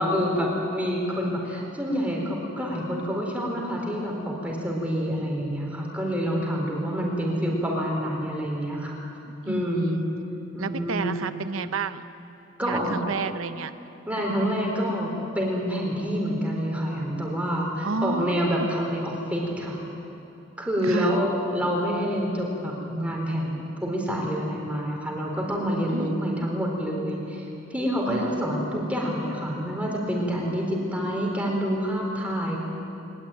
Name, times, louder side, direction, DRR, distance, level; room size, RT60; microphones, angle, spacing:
voice 1, 0.0-9.0 9.5-10.0 10.5-11.2 12.6-13.0 14.1-19.8 20.6-27.4 27.7-32.6, equal, 5° right, -1 dB, 4.4 m, -27 dB
voice 2, 9.2-10.1 10.6-12.0 12.6-13.7 17.8-18.7 20.8-21.2 25.9-26.6 28.1-28.7, right 4 dB, 90° right, 11 dB, 0.8 m, -31 dB
21.5 x 20.5 x 9.3 m, 2.9 s
head